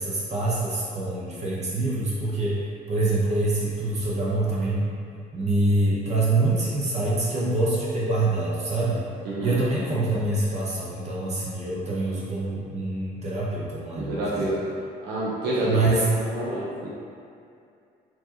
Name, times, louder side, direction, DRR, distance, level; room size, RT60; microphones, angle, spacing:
voice 1, 0.0-2.6 2.9-4.9 5.3-9.1 9.4-14.5 15.6-16.1, right 2 dB, 40° right, -6 dB, 0.8 m, -25 dB
voice 2, 9.2-9.6 14.0-14.7 15.0-15.9 16.2-16.9, right 1 dB, 80° right, -7 dB, 0.7 m, -28 dB
4.3 x 2.9 x 2.8 m, 2.5 s
cardioid pair, 110°, 17 cm